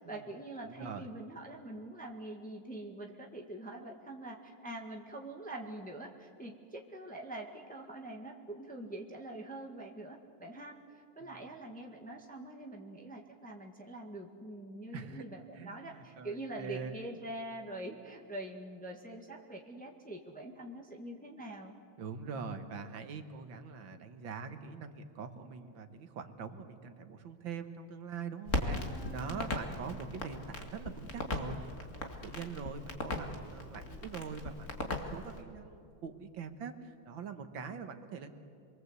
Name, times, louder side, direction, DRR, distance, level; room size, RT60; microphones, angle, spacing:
voice 1, 0.0-21.7 28.6-29.5, right 1 dB, 5° left, 0 dB, 1.6 m, -44 dB
voice 2, 0.6-1.1 11.2-11.4 14.9-15.2 15.5-17.1 22.0-28.8 29.1-38.3, right 5 dB, 75° right, 8 dB, 2.0 m, -43 dB
Crackle, 28.5-35.4, left 2 dB, 40° left, 2.4 m, -38 dB
28.0 x 22.5 x 8.1 m, 2.5 s
omnidirectional pair, 2.2 m